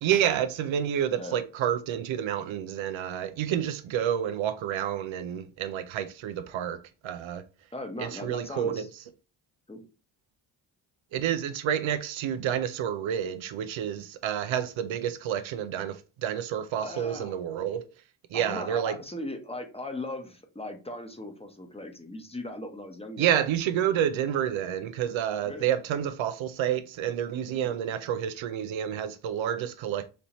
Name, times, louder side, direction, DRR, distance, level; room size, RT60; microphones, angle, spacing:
voice 1, 0.0-7.4 8.0-8.8 11.1-17.9 18.3-19.0 23.2-30.1, right 10 dB, 70° right, 0.6 m, -29 dB
voice 2, 7.7-8.9 9.7-9.8 16.8-17.3 18.3-23.3 25.4-25.7 27.5-27.7, left 2 dB, 10° left, 1.0 m, -38 dB
4.2 x 2.7 x 3.0 m
supercardioid pair, 45°, 49 cm